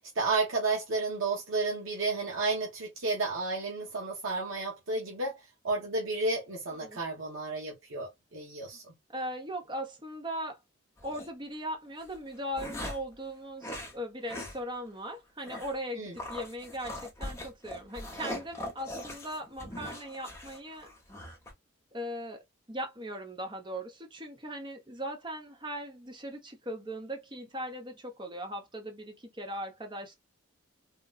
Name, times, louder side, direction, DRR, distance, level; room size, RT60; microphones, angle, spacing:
voice 1, 0.0-8.9 15.9-16.1, right 3 dB, 75° right, 1.0 m, -32 dB
voice 2, 9.1-10.6 11.0-20.9 21.9-22.4 22.7-30.2, equal, 20° right, 0.7 m, -39 dB
sound 1, 11.0-11.3 12.0-13.1 13.6-13.9 14.3-14.6 14.9-15.0 15.4-15.8 16.2-21.5, left 1 dB, 15° left, 0.7 m, -41 dB
3.7 x 2.1 x 2.3 m
head